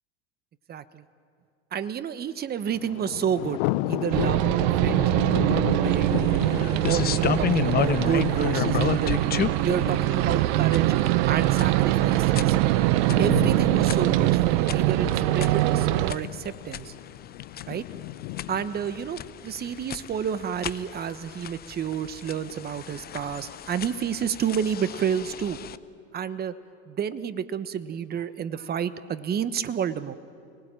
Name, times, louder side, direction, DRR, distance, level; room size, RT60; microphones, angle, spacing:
voice 1, 0.7-1.0 1.7-3.6 3.9-6.4 6.9-9.2 9.6-11.0 11.3-12.6 13.2-16.9 17.7-17.8 18.5-25.6 26.1-26.5 26.9-30.1, right 8 dB, 30° right, 13 dB, 1.1 m, -30 dB
Thunder, 2.7-19.7, left 18 dB, 60° left, 0.8 m, -35 dB
sound 1, 4.1-16.1, right 17 dB, 60° right, 0.9 m, -23 dB
sound 2, 5.9-25.8, left 10 dB, 30° left, 0.8 m, -33 dB
30.0 x 19.5 x 9.0 m, 2.5 s
hypercardioid pair, 100°, 34 cm